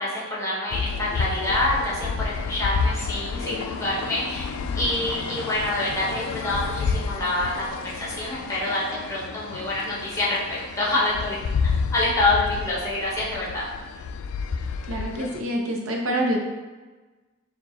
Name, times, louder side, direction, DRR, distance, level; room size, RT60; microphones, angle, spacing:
voice 1, 0.0-13.6, left 2 dB, 15° left, -7 dB, 1.0 m, -27 dB
sound 1, 0.7-15.4, left 5 dB, 80° left, 0.3 m, -30 dB
voice 2, 14.9-16.4, right 1 dB, 85° right, 0 dB, 0.7 m, -26 dB
4.6 x 2.3 x 4.0 m, 1.3 s
head